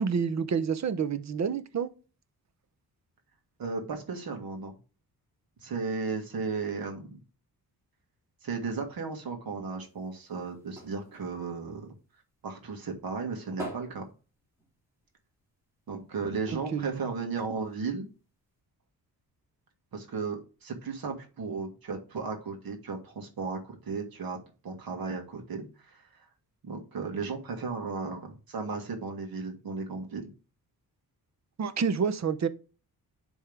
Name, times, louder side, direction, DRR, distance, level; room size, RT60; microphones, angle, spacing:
voice 1, 0.0-1.9 16.7-17.1 31.6-32.5, right 6 dB, 45° right, 0.7 m, -28 dB
voice 2, 3.6-4.7 5.6-7.2 8.4-12.0 12.4-14.1 15.9-18.1 19.9-24.4 24.6-26.3 26.6-30.3, right 4 dB, 65° right, 1.8 m, -35 dB
sound 1, 9.8-12.5 12.9-15.1 15.4-15.6 15.8-16.0 16.4-17.9 18.6-18.7, right 1 dB, 5° right, 2.2 m, -46 dB
10.5 x 3.6 x 3.3 m
wide cardioid pair, 135°, 38 cm